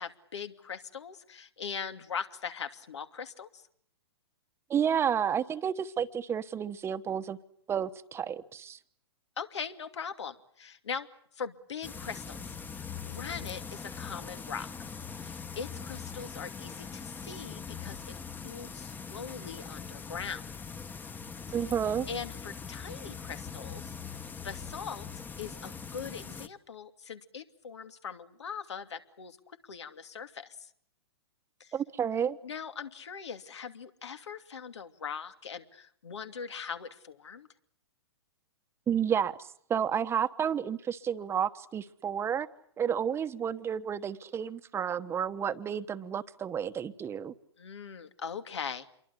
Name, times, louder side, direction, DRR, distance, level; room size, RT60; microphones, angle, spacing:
voice 1, 0.0-3.6 9.4-11.1 11.3-14.9 15.2-20.5 21.6-21.7 22.1-23.9 24.4-25.1 25.4-30.7 31.6-31.7 32.4-37.5 47.6-48.9, left 6 dB, 80° left, 8 dB, 2.7 m, -41 dB
voice 2, 4.7-7.4 7.7-8.8 21.5-22.1 31.7-32.4 38.9-39.4 39.7-42.5 42.8-47.3, right 8 dB, 15° right, 12 dB, 1.1 m, -31 dB
sound 1, 11.8-26.5, left 6 dB, 15° left, 1.3 m, -42 dB
28.0 x 23.5 x 8.4 m, 0.64 s
hypercardioid pair, 130°, 14 cm